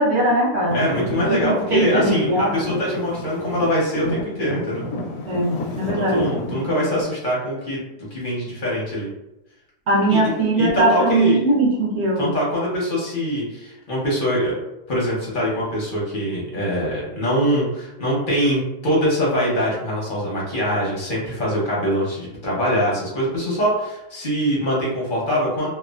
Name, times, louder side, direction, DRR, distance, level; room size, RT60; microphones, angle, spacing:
voice 1, 0.0-0.8 1.3-2.6 5.3-6.2 9.9-12.3, right 2 dB, 55° right, -3 dB, 0.8 m, -20 dB
Traffic noise roadway noise / Engine, 0.7-7.0, left 2 dB, 70° left, 0.9 m, -30 dB
voice 2, 0.7-4.8 5.9-7.8 8.1-9.1 10.1-10.2 10.6-11.4 12.2-14.6 14.9-25.7, equal, 45° left, -6 dB, 0.7 m, -23 dB
2.9 x 2.2 x 2.4 m, 0.89 s
omnidirectional pair, 1.9 m